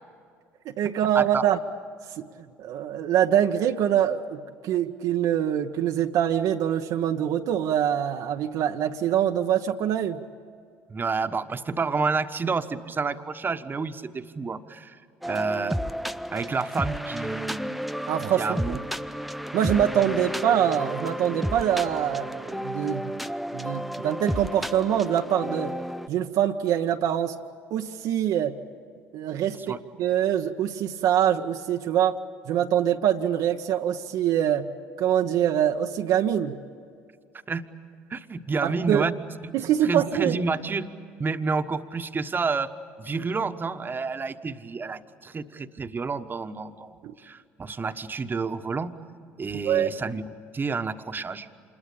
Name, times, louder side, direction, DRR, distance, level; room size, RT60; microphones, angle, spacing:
voice 1, 0.6-1.6 2.2-2.3 2.6-10.2 18.1-18.8 19.5-23.2 23.5-25.8 26.1-27.4 27.7-28.6 29.1-32.2 32.5-34.7 35.0-36.6 38.6-39.0 39.5-40.4 47.0-47.1 49.6-49.9, right 10 dB, 60° right, 4 dB, 0.9 m, -24 dB
voice 2, 10.9-15.0 15.3-15.8 16.3-17.8 18.3-18.8 29.6-29.8 37.5-37.7 38.1-39.5 39.8-40.9 41.2-42.7 43.0-49.0 49.4-50.3 50.5-51.5, right 4 dB, 30° right, 9 dB, 1.3 m, -29 dB
sound 1, 15.2-26.1, equal, ahead, 0.6 m, -32 dB
27.0 x 21.5 x 8.4 m, 2.3 s
hypercardioid pair, 60°, 7 cm